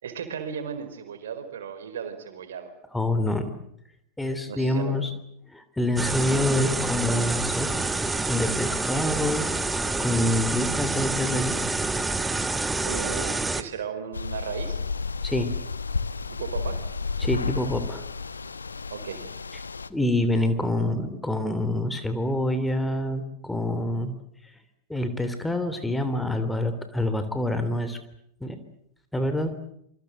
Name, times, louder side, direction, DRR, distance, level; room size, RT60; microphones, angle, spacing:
voice 1, 0.0-2.7 4.4-5.1 12.8-14.8 16.3-16.8 18.9-19.3, right 7 dB, 60° right, 9 dB, 4.7 m, -35 dB
voice 2, 2.9-3.5 4.2-5.1 5.5-7.9 8.3-9.4 10.0-11.5 15.2-15.5 17.2-18.0 19.9-24.1 24.9-28.0 28.4-28.6 29.1-29.5, left 1 dB, 5° left, 9 dB, 3.1 m, -26 dB
sound 1, 6.0-13.6, right 3 dB, 10° right, 1.8 m, -27 dB
sound 2, 14.1-19.9, left 4 dB, 75° left, 1.3 m, -31 dB
27.5 x 25.5 x 7.8 m, 0.73 s
figure-of-eight pair, 90°, 0 cm